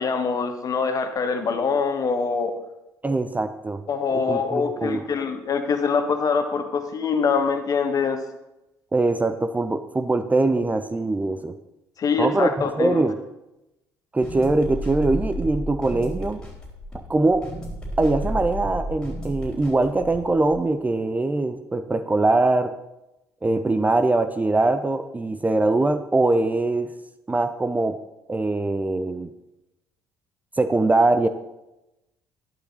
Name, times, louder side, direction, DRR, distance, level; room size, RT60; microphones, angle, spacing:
voice 1, 0.0-2.5 3.9-8.2 12.0-13.0, left 5 dB, 40° left, 7 dB, 1.6 m, -24 dB
voice 2, 3.0-3.8 4.1-5.1 8.9-11.5 12.2-12.5 12.8-13.2 14.1-16.4 16.9-17.4 18.0-22.8 23.4-26.9 27.3-28.0 28.3-29.3 30.6-31.3, right 2 dB, 15° right, 10 dB, 0.7 m, -22 dB
sound 1, 14.2-20.6, equal, 10° left, 4.1 m, -32 dB
11.5 x 11.5 x 4.1 m, 0.94 s
figure-of-eight pair, 50°, 9 cm